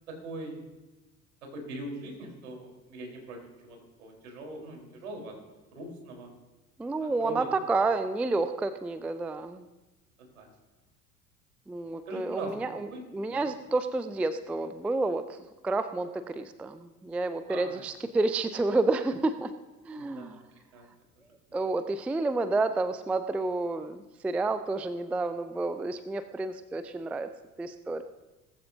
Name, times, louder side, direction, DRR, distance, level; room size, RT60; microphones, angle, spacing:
voice 1, 0.1-0.7 1.4-6.3 7.0-7.5 10.2-10.5 12.1-12.5 12.9-13.0 13.3-13.4 17.5-17.8 20.0-20.4 20.7-20.8 21.5-21.6, right 2 dB, 70° right, 1 dB, 4.2 m, -41 dB
voice 2, 6.8-9.6 11.7-12.9 13.1-15.2 15.6-19.5 19.9-20.4 21.5-27.3 27.6-28.0, right 3 dB, 5° right, 12 dB, 0.4 m, -30 dB
19.5 x 14.5 x 2.7 m, 1.1 s
figure-of-eight pair, 70°, 43 cm